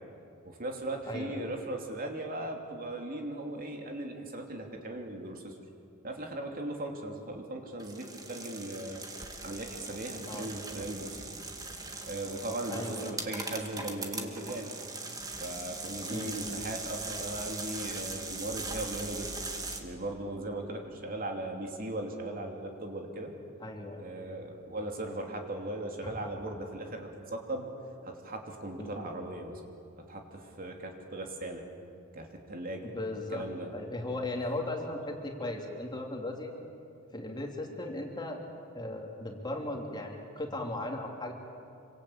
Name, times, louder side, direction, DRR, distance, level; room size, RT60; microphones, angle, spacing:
voice 1, 0.4-5.5 6.0-9.0 9.4-11.3 12.0-14.7 15.4-19.3 19.8-23.3 24.0-27.7 28.0-29.6 30.0-31.7 32.1-32.9 33.3-33.7, right 1 dB, 45° right, 2 dB, 3.1 m, -38 dB
voice 2, 1.0-1.4 10.3-10.5 12.7-13.2 16.1-16.6 23.6-24.0 26.0-26.1 28.8-29.0 32.8-33.4 33.7-36.5 37.1-38.4 38.7-41.3, left 1 dB, 20° left, 1 dB, 3.1 m, -37 dB
sound 1, 7.8-19.8, right 3 dB, 20° right, 2.3 m, -40 dB
27.0 x 25.0 x 8.7 m, 2.5 s
head